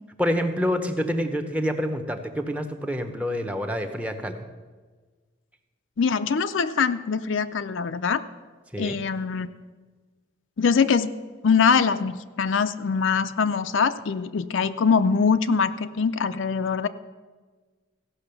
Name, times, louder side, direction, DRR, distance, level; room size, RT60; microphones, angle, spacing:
voice 1, 0.2-4.4 8.7-9.0, equal, 5° right, 6 dB, 0.7 m, -27 dB
voice 2, 6.0-8.2 8.8-9.5 10.6-11.1 11.4-16.9, left 5 dB, 70° left, 11 dB, 0.5 m, -23 dB
15.5 x 6.1 x 6.8 m, 1.4 s
head